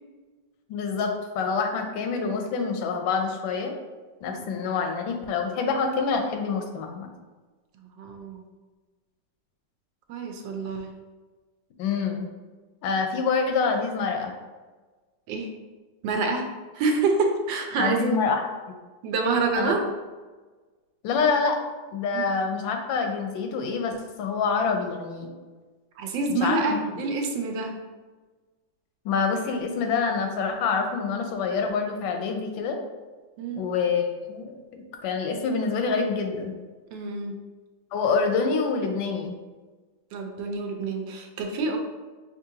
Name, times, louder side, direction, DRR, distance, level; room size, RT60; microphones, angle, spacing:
voice 1, 0.7-3.7 4.2-7.1 11.8-12.3 12.8-14.3 17.8-18.4 19.6-19.7 21.0-21.6 21.9-25.3 26.3-26.8 29.0-32.8 33.6-36.5 37.9-39.4, left 5 dB, 85° left, 4 dB, 1.4 m, -26 dB
voice 2, 4.3-4.6 7.8-8.5 10.1-10.9 15.3-15.5 16.0-16.5 16.7-18.2 19.0-19.8 22.1-22.2 26.0-27.7 33.4-33.7 36.9-37.4 40.1-41.8, right 3 dB, 80° right, 3 dB, 1.3 m, -27 dB
5.6 x 2.5 x 2.7 m, 1.3 s
omnidirectional pair, 2.0 m